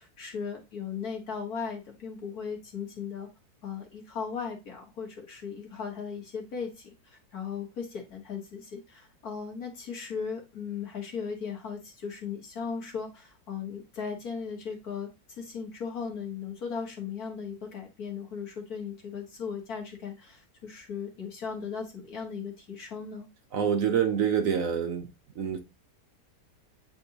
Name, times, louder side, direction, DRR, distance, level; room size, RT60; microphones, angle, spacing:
voice 1, 0.0-3.3 3.6-23.3, left 6 dB, 60° left, 2.2 m, -37 dB
voice 2, 23.5-25.1 25.4-25.6, right 8 dB, 60° right, 1.0 m, -26 dB
8.2 x 4.4 x 2.9 m
omnidirectional pair, 1.8 m